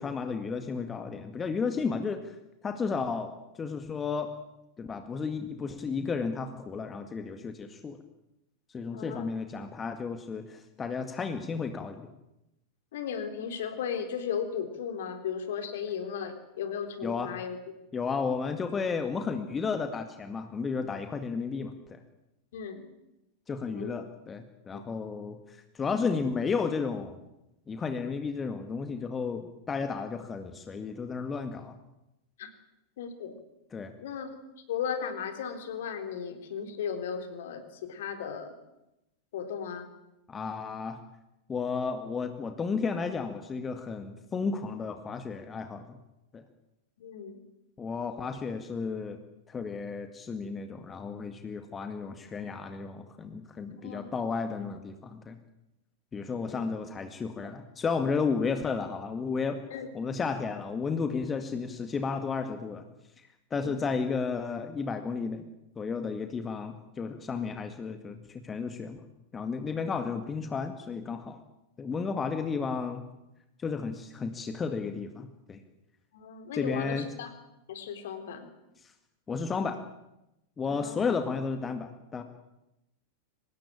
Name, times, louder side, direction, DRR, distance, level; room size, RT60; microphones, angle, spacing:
voice 1, 0.0-2.4 2.6-4.3 4.8-8.0 8.7-12.1 17.0-17.4 17.9-22.0 23.5-27.2 27.7-31.8 33.7-33.9 40.3-41.0 41.5-46.0 46.3-46.4 47.8-49.2 49.5-55.4 56.1-59.6 59.9-62.8 63.2-65.5 65.8-69.0 69.3-71.4 71.8-73.1 73.6-75.6 76.5-77.1 78.8-78.9 79.3-79.8 80.6-82.2, left 5 dB, 20° left, 7 dB, 2.0 m, -33 dB
voice 2, 8.9-9.3 12.9-17.6 22.5-22.8 23.6-24.0 24.7-24.8 32.4-32.5 33.0-33.3 34.0-34.3 34.7-38.5 39.3-39.9 47.0-47.4 53.7-54.1 56.4-56.6 59.7-59.9 63.6-63.7 76.1-77.3 77.7-78.5 80.7-81.1, left 7 dB, 55° left, 7 dB, 3.7 m, -36 dB
25.0 x 19.5 x 8.8 m, 0.90 s
figure-of-eight pair, 90°, 0 cm